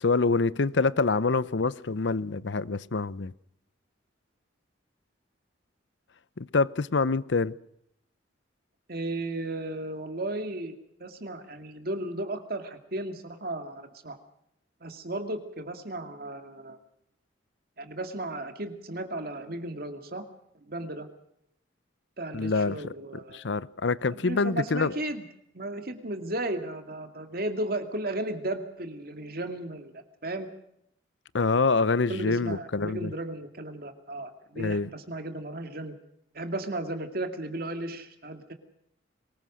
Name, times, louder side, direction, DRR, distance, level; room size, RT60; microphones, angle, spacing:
voice 1, 0.0-3.3 6.4-7.5 22.3-22.9 23.3-24.9 31.3-33.1 34.6-34.9, left 4 dB, 70° left, 0.7 m, -26 dB
voice 2, 8.9-10.7 11.0-14.2 14.8-16.8 17.8-20.2 20.6-21.1 22.2-23.4 24.1-25.2 25.5-29.9 30.2-30.5 32.1-36.0 36.3-38.5, right 1 dB, 55° right, 2.4 m, -35 dB
23.5 x 20.0 x 6.3 m
head